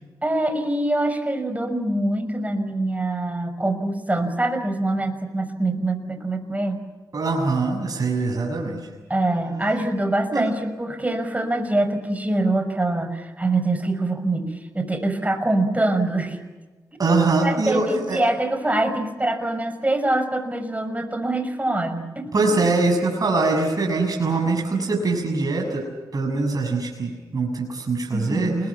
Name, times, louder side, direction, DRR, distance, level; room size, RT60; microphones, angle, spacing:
voice 1, 0.2-6.8 9.1-16.4 17.4-22.3 28.1-28.7, right 2 dB, 20° right, 8 dB, 6.1 m, -24 dB
voice 2, 7.1-8.8 10.3-10.4 17.0-18.2 22.3-25.9 26.1-28.5, right 3 dB, 50° right, 2 dB, 6.9 m, -23 dB
29.0 x 22.0 x 7.3 m, 1.3 s
cardioid pair, 55°, 8 cm